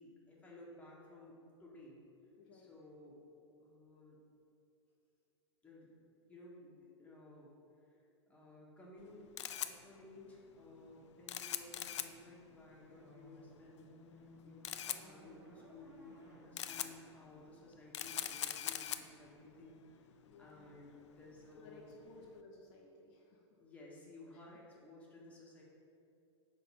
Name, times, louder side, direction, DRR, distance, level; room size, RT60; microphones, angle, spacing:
voice 1, 0.0-2.0 2.5-3.2 3.6-4.2 5.6-5.9 6.3-7.5 7.9-9.3 9.6-20.1 20.4-22.1 23.6-25.6, left 2 dB, 10° left, -5 dB, 1.4 m, -56 dB
voice 2, 2.4-2.7 20.2-20.8 21.5-23.4, left 2 dB, 50° left, -2 dB, 0.8 m, -58 dB
Camera, 9.0-22.4, left 10 dB, 75° left, 0.4 m, -45 dB
sound 1, 12.9-18.1, left 1 dB, 10° right, 1.3 m, -60 dB
5.3 x 3.7 x 5.8 m, 2.7 s
hypercardioid pair, 110°, 15 cm